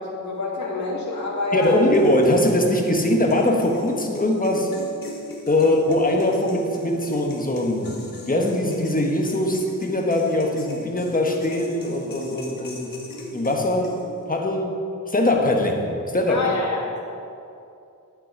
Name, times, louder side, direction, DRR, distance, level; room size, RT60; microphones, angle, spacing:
voice 1, 0.0-1.8 5.6-5.7 16.3-17.0, left 3 dB, 60° left, -6 dB, 2.3 m, -27 dB
voice 2, 1.5-4.7 5.5-8.0 8.3-12.9 13.3-14.0 14.3-14.8 15.1-16.5, left 1 dB, 25° left, 1 dB, 1.3 m, -21 dB
sound 1, 1.6-14.2, left 1 dB, 85° left, 1.7 m, -39 dB
11.0 x 8.5 x 4.6 m, 2.6 s
wide cardioid pair, 100°, 33 cm